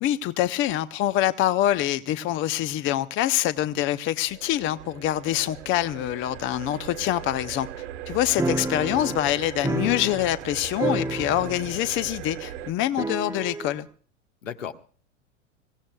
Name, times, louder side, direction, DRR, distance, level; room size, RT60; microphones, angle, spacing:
voice 1, 0.0-7.7 8.1-13.9, left 13 dB, 30° left, 0.7 m, -25 dB
sound 1, 4.3-12.7, right 11 dB, 65° right, 1.7 m, -39 dB
voice 2, 8.2-8.6 14.4-14.7, left 8 dB, 80° left, 1.5 m, -36 dB
sound 2, 8.4-10.5 10.8-11.8 12.1-12.2 13.0-13.8, right 3 dB, 10° right, 0.7 m, -30 dB
26.5 x 16.5 x 2.3 m
hypercardioid pair, 95°, 38 cm